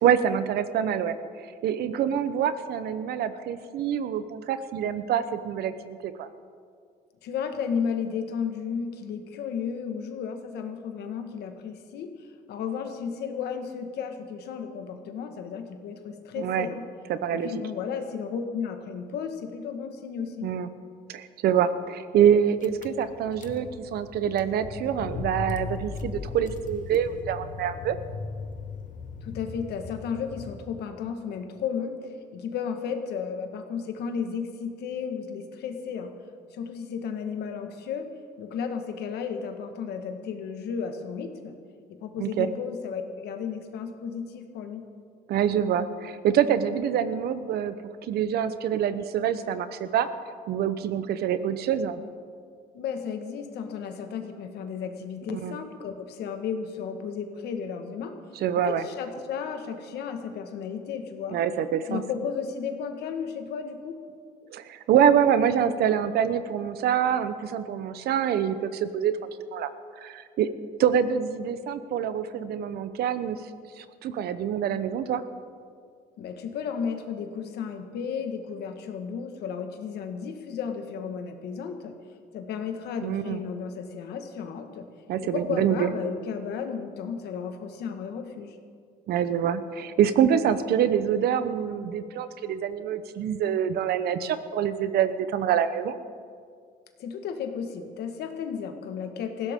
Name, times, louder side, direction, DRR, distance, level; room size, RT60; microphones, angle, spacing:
voice 1, 0.0-6.3 16.4-16.7 17.1-17.5 20.4-20.7 21.1-28.0 42.2-42.5 45.3-47.8 48.0-50.1 50.5-52.0 55.3-55.5 58.4-58.8 61.3-62.0 64.5-69.2 69.5-69.7 70.0-70.5 70.8-73.4 73.8-75.2 83.0-83.4 85.1-85.9 89.1-95.9, right 9 dB, 70° right, 12 dB, 0.9 m, -25 dB
voice 2, 7.2-16.8 17.3-20.5 29.2-36.1 36.5-38.1 38.4-41.5 41.9-44.8 52.7-58.1 58.6-61.4 61.9-63.9 76.2-81.9 82.3-84.8 85.2-88.6 97.0-99.5, left 6 dB, 75° left, 6 dB, 1.7 m, -33 dB
Car / Engine, 22.3-22.4 22.6-31.0, left 5 dB, 50° left, 1.1 m, -38 dB
19.5 x 16.0 x 3.7 m, 2.2 s
cardioid pair, 110°, 17 cm